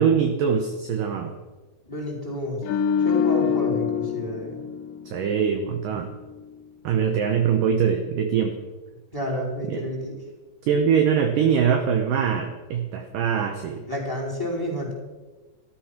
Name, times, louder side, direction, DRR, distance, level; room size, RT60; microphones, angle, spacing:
voice 1, 0.0-1.3 5.1-6.1 6.8-8.6 9.7-9.8 10.7-13.8, right 7 dB, 70° right, 5 dB, 2.1 m, -23 dB
voice 2, 1.9-2.6 3.0-4.6 9.1-10.2 13.9-14.9, equal, 5° left, -1 dB, 4.1 m, -30 dB
sound 1, 2.6-5.9 6.2-6.4, left 7 dB, 85° left, 3.1 m, -26 dB
15.0 x 13.5 x 5.9 m, 1.2 s
omnidirectional pair, 5.1 m